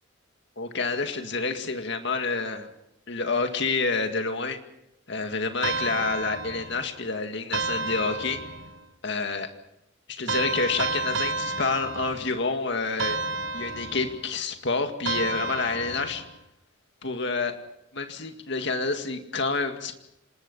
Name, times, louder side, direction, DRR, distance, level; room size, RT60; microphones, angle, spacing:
voice 1, 0.6-2.7 3.1-4.6 5.1-8.4 9.0-9.5 10.1-13.2 13.5-16.2 17.0-17.6 17.9-20.0, left 4 dB, 60° left, 6 dB, 2.0 m, -28 dB
sound 1, 5.6-6.9 7.5-8.8 10.3-12.5 13.0-14.3 15.1-16.4, right 3 dB, 60° right, 1.3 m, -31 dB
27.5 x 20.0 x 5.5 m, 0.81 s
head